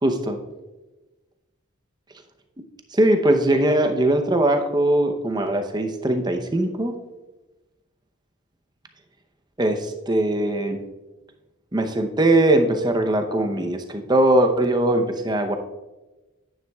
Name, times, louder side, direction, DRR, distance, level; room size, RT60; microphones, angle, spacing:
voice 1, 0.0-0.4 2.9-6.9 9.6-10.8 11.7-15.5, right 1 dB, 20° right, 5 dB, 0.7 m, -20 dB
9.9 x 9.3 x 2.3 m, 1.1 s
head